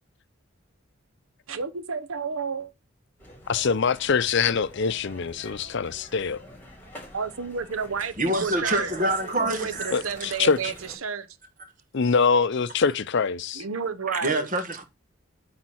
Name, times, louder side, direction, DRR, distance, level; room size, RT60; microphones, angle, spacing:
voice 1, 1.5-2.7 7.1-8.9 9.4-11.3 13.5-14.5, right 5 dB, 80° right, 0.8 m, -31 dB
sound 1, 3.2-11.0, left 1 dB, 10° left, 3.7 m, -47 dB
voice 2, 3.5-6.4 9.9-10.7 11.9-13.6, left 5 dB, 55° left, 0.5 m, -24 dB
voice 3, 8.2-10.0 14.1-14.8, right 1 dB, 40° right, 1.5 m, -26 dB
8.6 x 4.1 x 6.2 m
head